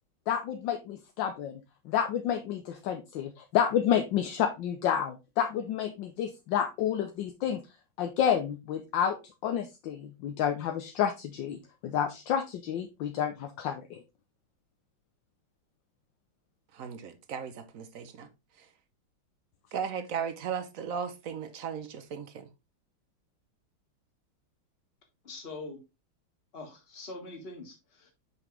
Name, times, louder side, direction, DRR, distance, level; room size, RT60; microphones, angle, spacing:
voice 1, 0.3-1.6 1.8-7.6 8.0-9.2 9.4-14.0, left 9 dB, 75° left, 1.4 m, -30 dB
voice 2, 16.7-18.3 19.7-22.5, right 7 dB, 55° right, 0.9 m, -36 dB
voice 3, 25.2-25.8 26.5-28.1, left 3 dB, 30° left, 1.9 m, -43 dB
6.1 x 5.5 x 3.2 m
omnidirectional pair, 2.2 m